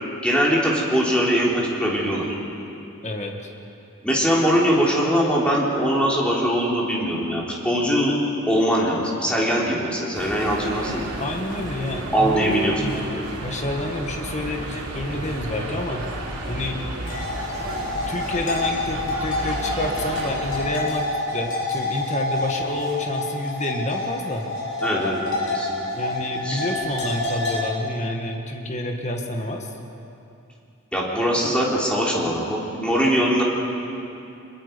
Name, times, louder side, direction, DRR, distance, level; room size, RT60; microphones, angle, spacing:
voice 1, 0.2-2.3 4.0-8.2 8.5-11.0 12.1-13.2 24.8-25.8 26.4-26.7 30.9-33.4, equal, 5° left, -4 dB, 3.6 m, -22 dB
voice 2, 3.0-3.5 11.2-13.0 13.4-16.0 16.5-16.8 18.1-24.5 26.0-29.7, left 1 dB, 30° left, 2 dB, 1.8 m, -29 dB
sound 1, 10.1-20.8, right 1 dB, 80° right, 5.0 m, -32 dB
sound 2, 17.0-27.6, left 2 dB, 60° left, 6.6 m, -28 dB
25.5 x 22.0 x 5.3 m, 2.7 s
head